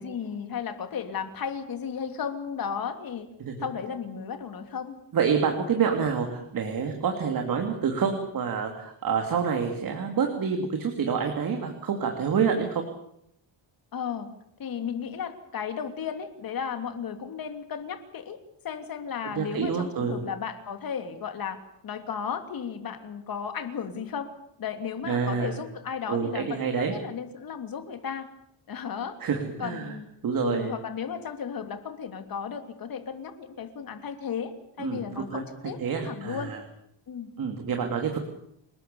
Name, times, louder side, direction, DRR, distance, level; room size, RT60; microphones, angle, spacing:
voice 1, 0.0-3.3 3.6-5.0 13.9-14.3 14.6-18.4 18.6-24.3 24.6-28.3 28.7-29.2 29.6-30.1 30.4-36.5 37.1-37.3, left 7 dB, 50° left, 7 dB, 2.9 m, -34 dB
voice 2, 5.1-12.8 19.2-20.2 25.1-25.5 26.1-26.9 29.2-29.9 30.2-30.7 34.8-35.4 35.8-36.6 37.4-38.2, right 6 dB, 50° right, 3 dB, 3.1 m, -27 dB
28.0 x 20.0 x 7.1 m, 0.73 s
cardioid pair, 170°, 45 cm